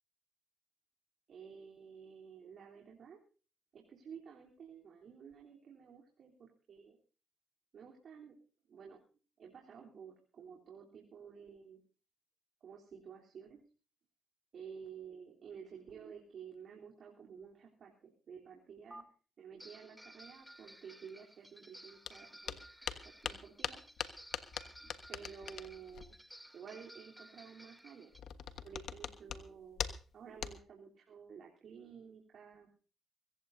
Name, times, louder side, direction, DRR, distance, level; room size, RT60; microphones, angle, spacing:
voice 1, 1.3-3.2 3.7-7.0 7.7-8.4 8.7-9.0 9.4-11.8 12.6-13.6 14.5-19.0 19.4-22.6 23.0-23.8 24.8-26.1 26.5-28.1 28.6-29.8 30.1-32.7, right 7 dB, 60° right, -1 dB, 3.4 m, -52 dB
sound 1, 18.9-19.0 19.6-28.2, equal, 5° right, 1.7 m, -56 dB
sound 2, 22.1-22.2 22.5-26.1 28.1-29.4 29.7-30.1 30.4-30.6, left 8 dB, 70° left, 1.3 m, -41 dB
24.0 x 15.0 x 2.7 m, 0.38 s
supercardioid pair, 55°, 0 cm